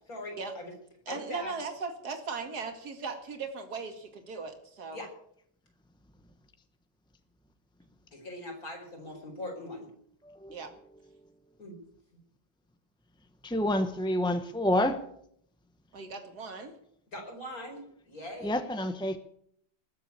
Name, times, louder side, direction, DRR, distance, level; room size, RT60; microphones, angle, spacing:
voice 1, 0.1-0.7 1.1-1.5 4.9-5.1 8.1-9.9 11.6-11.8 17.1-18.6, left 1 dB, 55° left, 1 dB, 5.2 m, -41 dB
voice 2, 1.1-5.0 10.5-10.7 15.9-16.7, right 4 dB, 60° right, 6 dB, 2.6 m, -38 dB
voice 3, 13.4-15.0 18.4-19.2, left 1 dB, 5° left, 8 dB, 0.5 m, -28 dB
20.0 x 7.5 x 8.5 m, 0.67 s
omnidirectional pair, 1.9 m